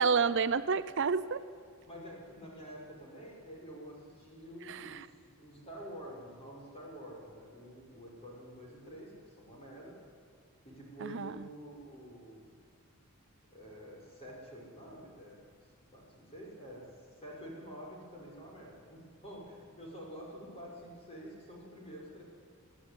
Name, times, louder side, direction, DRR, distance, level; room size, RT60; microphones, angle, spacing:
voice 1, 0.0-1.4 4.7-5.0 11.0-11.3, right 5 dB, 55° right, 13 dB, 0.6 m, -29 dB
voice 2, 1.9-10.0 10.6-12.5 13.5-15.4 15.9-16.8 17.2-22.2, equal, 30° left, -2 dB, 6.1 m, -48 dB
24.0 x 13.5 x 9.9 m, 2.3 s
head